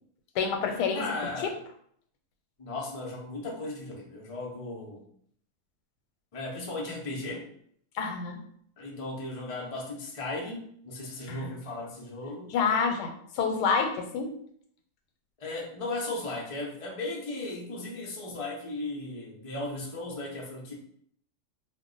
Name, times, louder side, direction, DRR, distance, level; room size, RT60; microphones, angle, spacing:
voice 1, 0.4-1.0 7.9-8.4 11.3-11.5 12.5-14.3, left 5 dB, 85° left, 4 dB, 1.2 m, -28 dB
voice 2, 0.9-1.6 2.6-5.0 6.3-7.5 8.8-12.5 15.4-20.7, left 2 dB, 50° left, -3 dB, 0.4 m, -36 dB
2.6 x 2.1 x 3.7 m, 0.65 s
omnidirectional pair, 1.7 m